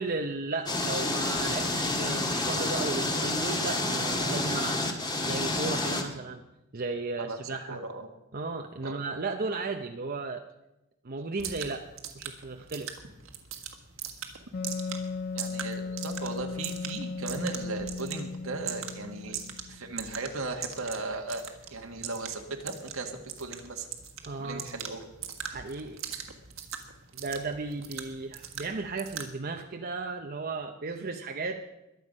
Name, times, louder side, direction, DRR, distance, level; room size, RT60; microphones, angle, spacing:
voice 1, 0.0-4.8 5.2-6.4 6.7-7.8 8.3-10.4 11.0-11.8 12.1-12.9 24.2-24.7 25.4-26.0 27.1-31.6, right 3 dB, 45° right, 3 dB, 0.8 m, -35 dB
sound 1, 0.7-6.0, left 2 dB, 20° left, 1.6 m, -29 dB
voice 2, 7.2-8.1 8.8-9.0 15.3-19.4 19.7-23.9 24.4-25.0, right 3 dB, 90° right, 3 dB, 1.8 m, -37 dB
sound 2, 11.4-29.3, right 8 dB, 65° right, 1.7 m, -42 dB
Wind instrument woodwind instrument, 14.5-19.9, left 4 dB, 50° left, 0.4 m, -37 dB
22.0 x 8.0 x 5.4 m, 0.93 s
head